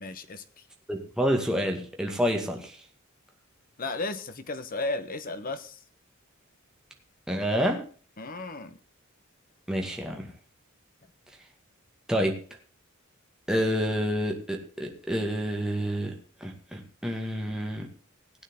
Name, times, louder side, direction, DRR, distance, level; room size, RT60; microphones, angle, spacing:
voice 1, 0.0-0.4 3.8-5.8 8.2-8.8, left 2 dB, 45° left, 11 dB, 1.2 m, -34 dB
voice 2, 0.9-2.8 7.3-7.8 9.7-10.3 12.1-12.4 13.5-16.2 16.4-17.9, equal, 5° right, 1 dB, 2.1 m, -28 dB
17.5 x 9.3 x 3.8 m, 0.40 s
head